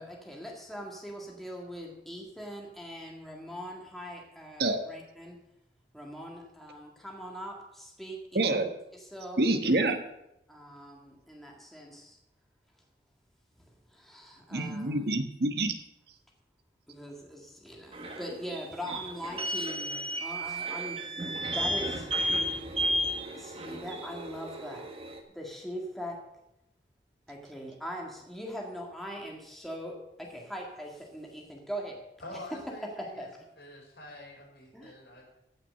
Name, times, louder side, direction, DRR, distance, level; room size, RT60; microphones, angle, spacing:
voice 1, 0.0-5.4 5.9-8.6 8.9-9.4 10.5-12.2 13.9-15.0 16.9-21.3 21.5-22.1 23.3-24.9 25.3-26.2 27.3-32.0 32.3-32.4 32.8-33.3 34.7-34.9, equal, ahead, -1 dB, 1.8 m, -41 dB
voice 2, 8.3-8.7 9.4-10.0 14.5-15.7, right 2 dB, 65° right, 7 dB, 1.2 m, -27 dB
sound 1, 17.9-25.2, equal, 30° right, 1.4 m, -33 dB
voice 3, 32.2-33.3 33.6-35.3, left 1 dB, 75° left, -2 dB, 5.3 m, -46 dB
14.5 x 6.0 x 6.6 m, 0.86 s
head